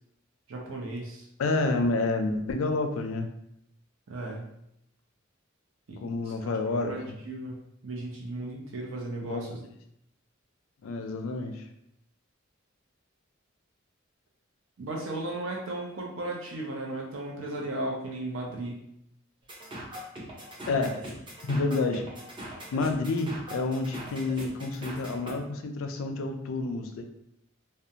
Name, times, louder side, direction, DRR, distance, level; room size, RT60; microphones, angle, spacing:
voice 1, 0.5-1.3 4.1-4.5 5.9-6.1 6.8-9.6 14.8-18.8, right 2 dB, 70° right, 0 dB, 0.6 m, -35 dB
voice 2, 1.4-3.3 6.0-7.1 9.2-9.4 10.8-11.6 20.7-21.0 21.5-22.0 22.7-27.0, left 3 dB, 75° left, 5 dB, 0.3 m, -29 dB
sound 1, 19.5-25.3, equal, 25° right, 0.5 m, -41 dB
2.4 x 2.1 x 2.7 m, 0.77 s
head